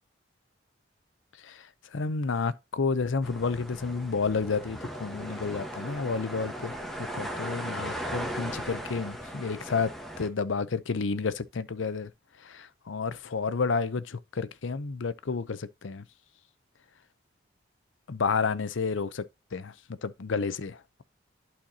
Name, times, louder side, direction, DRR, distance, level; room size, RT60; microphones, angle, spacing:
voice 1, 1.4-12.1 12.4-16.0 18.1-19.3 19.5-21.0, left 4 dB, 85° left, 0.6 m, -31 dB
sound 1, 3.2-10.3, equal, ahead, 1.1 m, -37 dB
11.5 x 4.4 x 2.8 m
head